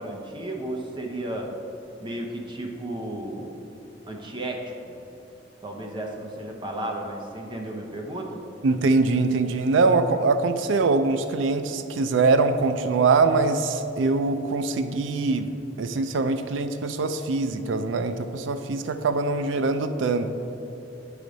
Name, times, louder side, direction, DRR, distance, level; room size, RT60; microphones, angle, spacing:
voice 1, 0.0-1.5 2.0-3.5 4.1-4.9 5.6-8.4, right 1 dB, 25° right, 1 dB, 0.7 m, -33 dB
voice 2, 8.6-15.5 15.8-20.3, right 3 dB, 85° right, 9 dB, 0.4 m, -23 dB
9.6 x 5.0 x 3.9 m, 3.0 s
head